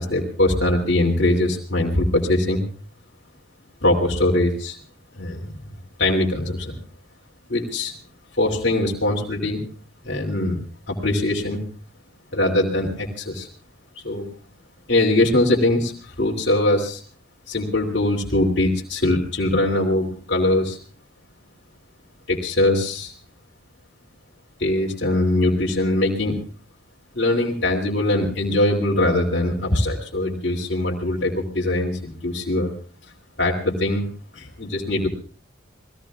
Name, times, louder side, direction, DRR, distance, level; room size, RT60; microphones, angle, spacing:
voice 1, 0.0-2.7 3.8-4.8 5.1-5.5 6.0-6.8 7.5-7.9 8.4-9.7 10.0-10.6 10.9-11.6 12.3-13.5 14.0-14.3 14.9-17.0 17.5-20.8 22.3-23.1 24.6-26.4 27.1-32.7 33.4-34.1 34.3-35.1, left 1 dB, 55° left, -3 dB, 2.7 m, -22 dB
28.0 x 19.5 x 2.4 m, 0.41 s
head